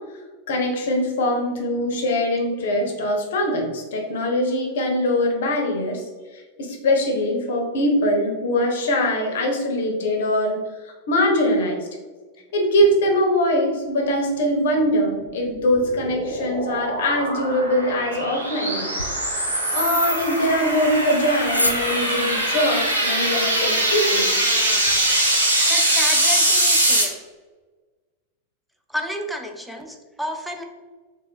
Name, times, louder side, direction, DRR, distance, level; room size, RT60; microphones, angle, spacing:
voice 1, 0.5-6.0 6.6-11.8 12.5-19.0 19.7-24.3, left 1 dB, 60° left, 1 dB, 0.7 m, -22 dB
sound 1, 15.3-27.0, right 1 dB, 80° right, 0.8 m, -22 dB
sound 2, 18.9-25.0, left 1 dB, 85° left, 0.3 m, -33 dB
voice 2, 25.7-27.2 28.9-30.6, equal, ahead, 3 dB, 0.4 m, -31 dB
3.9 x 2.1 x 3.4 m, 1.4 s
figure-of-eight pair, 90°, 0 cm